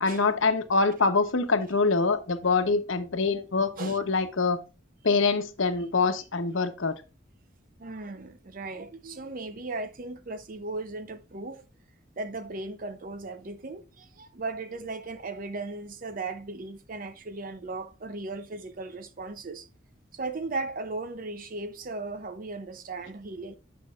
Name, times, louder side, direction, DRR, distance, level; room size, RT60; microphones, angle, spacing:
voice 1, 0.0-4.6 5.0-6.9, left 4 dB, 85° left, 1.0 m, -25 dB
voice 2, 7.8-11.6 12.2-19.7 20.1-23.5, right 3 dB, 45° right, 0.7 m, -37 dB
9.6 x 6.1 x 2.5 m
head